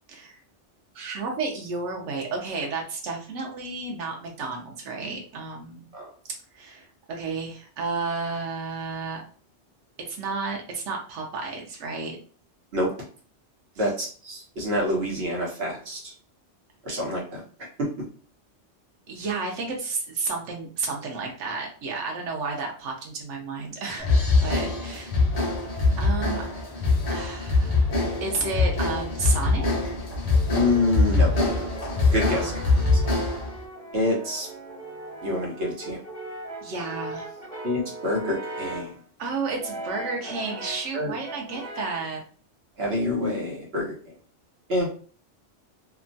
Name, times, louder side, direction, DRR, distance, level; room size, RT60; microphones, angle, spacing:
voice 1, 0.1-0.4 0.9-5.8 6.5-9.2 10.1-12.2 13.8-13.9 19.1-24.1 24.4-25.1 26.0-26.4 27.1-27.9 28.2-29.9 32.3-33.1 36.6-37.3 39.2-42.2, right 4 dB, 85° right, 0 dB, 1.0 m, -32 dB
voice 2, 13.8-16.1 16.8-17.4 17.8-17.9 30.5-31.3 32.1-32.5 32.9-33.0 33.9-34.5 35.2-36.0 37.6-39.0 40.9-41.1 42.8-43.9 44.7-44.9, left 1 dB, 60° right, -2 dB, 1.2 m, -26 dB
sound 1, 24.0-33.6, left 3 dB, 45° left, 0.6 m, -23 dB
Brass instrument, 24.9-26.9 27.6-29.6 30.3-39.0 39.6-40.9 41.2-42.1, right 2 dB, 5° left, 1.1 m, -40 dB
2.9 x 2.2 x 2.6 m, 0.42 s
omnidirectional pair, 1.2 m